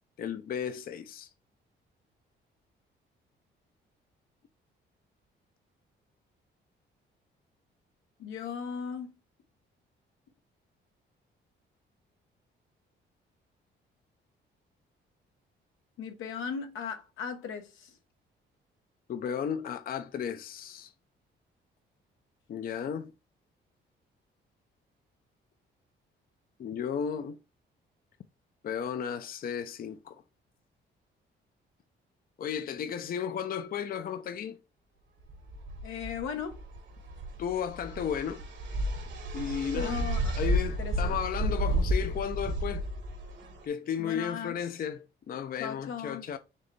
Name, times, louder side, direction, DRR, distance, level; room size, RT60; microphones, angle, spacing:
voice 1, 0.2-1.3 19.1-20.9 22.5-23.1 26.6-27.4 28.6-30.2 32.4-34.6 37.4-38.4 39.3-40.1 40.4-42.9 43.6-46.4, left 8 dB, 45° left, 0.5 m, -34 dB
voice 2, 8.2-9.1 16.0-17.9 35.8-36.6 39.7-40.4 40.8-41.2 44.0-44.6 45.6-46.2, left 7 dB, 90° left, 1.0 m, -37 dB
sound 1, 35.3-43.6, equal, 65° right, 1.4 m, -32 dB
4.4 x 3.3 x 3.2 m
cardioid pair, 90°, 20 cm